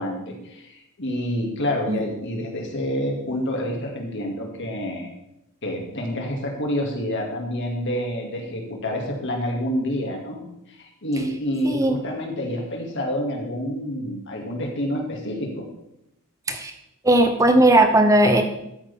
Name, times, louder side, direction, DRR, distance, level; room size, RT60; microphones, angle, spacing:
voice 1, 0.0-5.1 5.6-10.4 10.7-15.7, equal, 55° left, 1 dB, 2.3 m, -28 dB
voice 2, 11.6-12.0 16.5-16.7 17.0-18.4, right 1 dB, 15° right, 6 dB, 0.8 m, -17 dB
13.0 x 8.7 x 3.6 m, 0.83 s
head